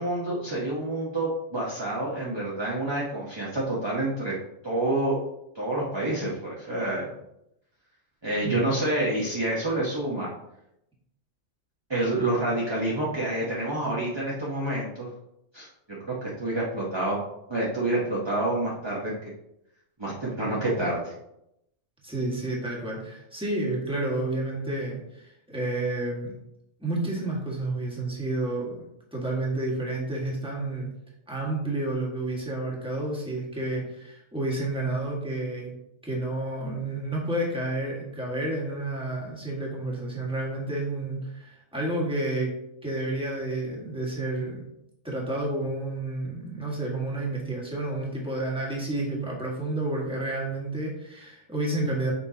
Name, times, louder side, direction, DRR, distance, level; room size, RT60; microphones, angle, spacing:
voice 1, 0.0-4.4 4.6-5.2 5.5-7.1 8.2-10.3 11.9-15.1 15.5-15.7 16.0-17.2 17.5-19.3 20.0-21.1, right 1 dB, 20° right, -5 dB, 1.0 m, -28 dB
voice 2, 8.4-8.8 22.0-26.3 26.8-28.9 29.1-30.9 31.3-35.7 36.0-42.5 42.8-44.6 45.0-52.1, right 2 dB, 5° right, -3 dB, 1.5 m, -30 dB
7.0 x 5.3 x 2.8 m, 0.82 s
omnidirectional pair, 1.4 m